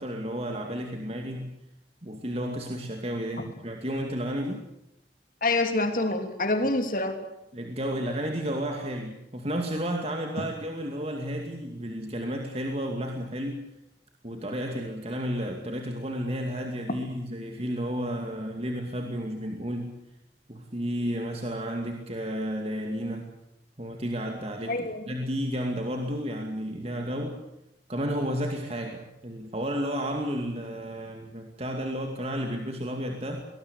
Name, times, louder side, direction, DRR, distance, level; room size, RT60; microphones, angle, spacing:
voice 1, 0.0-1.5 2.0-4.6 7.5-13.6 14.2-19.9 20.5-23.3 23.8-27.4 27.9-33.5, equal, 35° right, 3 dB, 2.5 m, -32 dB
voice 2, 5.4-7.2 10.4-10.5 24.7-25.0, left 2 dB, 50° left, 6 dB, 3.3 m, -26 dB
24.0 x 19.5 x 8.4 m, 0.83 s
head